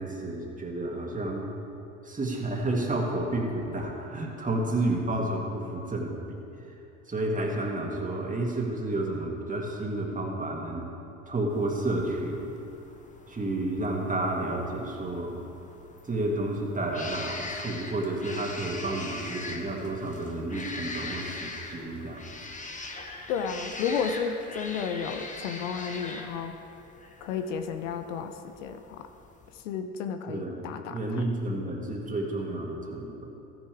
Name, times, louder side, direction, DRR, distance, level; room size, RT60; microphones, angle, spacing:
voice 1, 0.0-1.5 2.0-6.4 7.1-10.8 11.3-12.5 13.3-15.4 16.1-22.2 30.3-30.6 30.9-33.1, right 2 dB, 20° right, -1 dB, 2.3 m, -31 dB
sound 1, 11.5-29.6, left 2 dB, 20° left, 1.2 m, -42 dB
voice 2, 23.3-26.5 27.2-29.1 29.6-31.2, left 6 dB, 80° left, 8 dB, 0.7 m, -32 dB
14.0 x 9.4 x 3.5 m, 2.8 s
hypercardioid pair, 65°, 37 cm